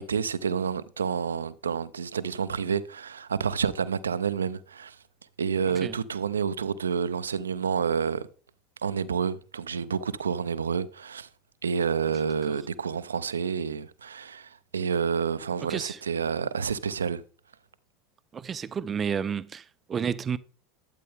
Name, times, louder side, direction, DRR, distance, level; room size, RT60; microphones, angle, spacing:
voice 1, 0.0-5.0 5.4-8.3 8.8-11.3 11.6-17.2, right 6 dB, 80° right, 0.5 m, -29 dB
voice 2, 15.7-16.0 18.3-20.4, right 7 dB, 30° right, 0.5 m, -31 dB
12.5 x 8.4 x 3.5 m
figure-of-eight pair, 75°, 0 cm